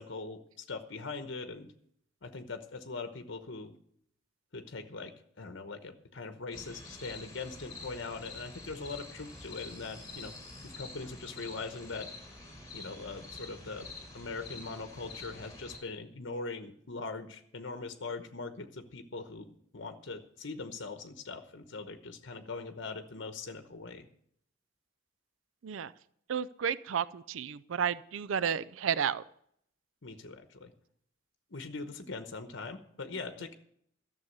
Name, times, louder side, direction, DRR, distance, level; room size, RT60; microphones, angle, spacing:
voice 1, 0.0-1.7 2.2-3.7 4.5-10.3 10.6-12.1 12.7-13.9 14.1-19.5 19.7-24.1 30.0-30.7 31.5-33.5, left 3 dB, 65° left, 7 dB, 1.0 m, -41 dB
sound 1, 6.5-15.8, left 3 dB, 20° left, 4.5 m, -47 dB
voice 2, 26.3-29.2, right 8 dB, 85° right, 17 dB, 0.4 m, -32 dB
13.0 x 7.1 x 8.0 m, 0.68 s
head